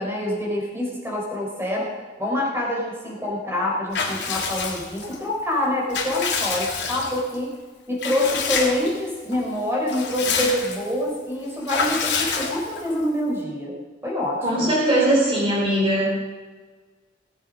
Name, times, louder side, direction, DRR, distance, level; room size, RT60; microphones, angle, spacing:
voice 1, 0.0-1.9 2.2-7.5 7.9-13.7 14.0-14.7, left 1 dB, 15° right, -3 dB, 4.4 m, -26 dB
Water / Bathtub (filling or washing) / Liquid, 3.9-5.2 5.6-7.4 8.0-9.0 9.3-9.4 9.7-10.9 11.7-12.9, left 5 dB, 65° left, 3.0 m, -27 dB
voice 2, 14.4-16.1, right 1 dB, 30° right, -6 dB, 4.3 m, -20 dB
20.0 x 8.4 x 5.4 m, 1.4 s
head